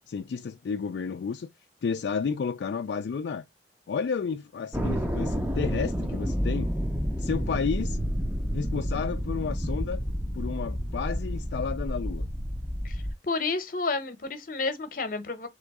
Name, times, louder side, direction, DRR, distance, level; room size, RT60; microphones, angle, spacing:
voice 1, 0.1-1.5 1.8-3.4 3.9-6.7 7.1-8.0 8.5-10.0 10.3-12.3, left 6 dB, 75° left, 0.3 m, -31 dB
sound 1, 4.7-13.1, equal, 10° right, 0.5 m, -30 dB
voice 2, 12.8-15.5, left 3 dB, 50° left, 0.9 m, -31 dB
3.6 x 3.0 x 4.6 m
head